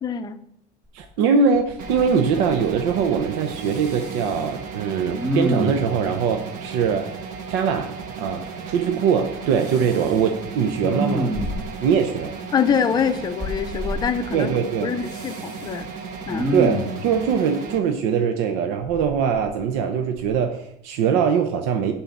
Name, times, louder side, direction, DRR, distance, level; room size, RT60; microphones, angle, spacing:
voice 1, 0.0-0.4 12.5-14.5 14.8-15.9 16.3-16.5, left 7 dB, 25° left, 9 dB, 0.5 m, -24 dB
voice 2, 0.9-7.1 7.5-7.9 8.2-11.3 11.8-12.3 14.3-14.9 16.5-21.9, right 6 dB, 75° right, 5 dB, 0.8 m, -22 dB
Respiratory sounds, 1.0-1.1 1.5-2.1 2.3-3.1 3.5-4.5 5.1-6.0 9.6-10.2 10.8-11.8 13.4-14.0 15.0-15.7 16.3-17.0 18.8-19.8 20.2-20.4, equal, 15° right, 2.2 m, -28 dB
sound 1, 1.8-17.8, right 5 dB, 50° right, 1.1 m, -35 dB
10.0 x 4.0 x 7.1 m, 0.77 s
cardioid pair, 160°, 18 cm